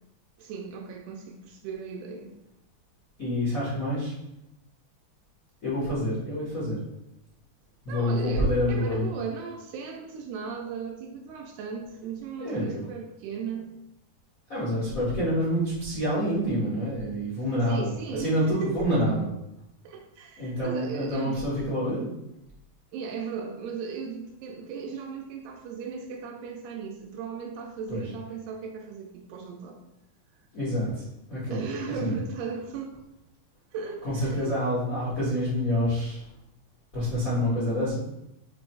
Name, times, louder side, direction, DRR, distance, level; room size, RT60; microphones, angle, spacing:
voice 1, 0.4-2.4 7.9-13.7 17.6-18.9 19.8-21.7 22.9-29.8 31.5-32.9 33.7-34.6, right 5 dB, 80° right, 2 dB, 2.5 m, -37 dB
voice 2, 3.2-4.1 5.6-6.8 7.8-9.0 12.4-12.8 14.5-19.3 20.4-22.2 27.9-28.0 30.5-31.6 32.0-32.1 34.0-36.3 36.9-37.9, equal, 65° left, -9 dB, 0.8 m, -27 dB
7.0 x 3.1 x 4.6 m, 0.84 s
omnidirectional pair, 5.0 m